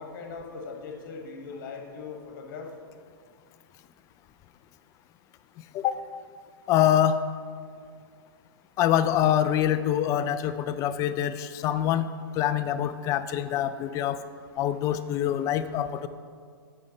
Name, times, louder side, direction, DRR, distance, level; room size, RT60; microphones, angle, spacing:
voice 1, 0.0-2.7, left 4 dB, 55° left, 2 dB, 1.4 m, -40 dB
voice 2, 6.7-7.2 8.8-12.1 12.3-14.2 14.6-16.1, left 10 dB, 25° left, 12 dB, 0.3 m, -25 dB
8.3 x 5.4 x 4.0 m, 2.1 s
hypercardioid pair, 135°, 13 cm